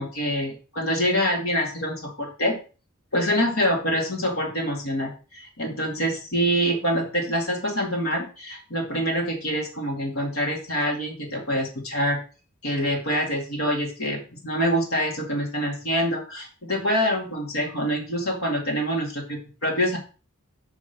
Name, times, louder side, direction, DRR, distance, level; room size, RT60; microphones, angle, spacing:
voice 1, 0.0-2.5 3.1-12.2 12.6-20.0, equal, 85° left, 0 dB, 2.2 m, -25 dB
6.2 x 5.8 x 5.3 m, 0.35 s
head